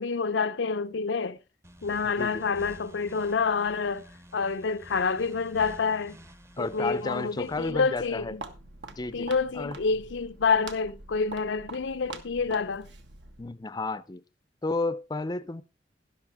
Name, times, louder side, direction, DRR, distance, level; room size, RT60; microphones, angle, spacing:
voice 1, 0.0-1.4 1.8-4.1 4.3-6.2 6.6-8.4 9.1-12.9, left 5 dB, 85° left, 0.6 m, -28 dB
sound 1, 1.6-7.7, equal, 15° right, 0.8 m, -50 dB
voice 2, 2.0-2.4 6.6-8.4 9.0-9.3 9.5-9.8 13.4-14.2 14.6-15.6, left 3 dB, 20° left, 0.5 m, -32 dB
Walk footsteps, 7.5-13.5, right 3 dB, 70° right, 1.5 m, -45 dB
12.0 x 11.5 x 3.5 m
head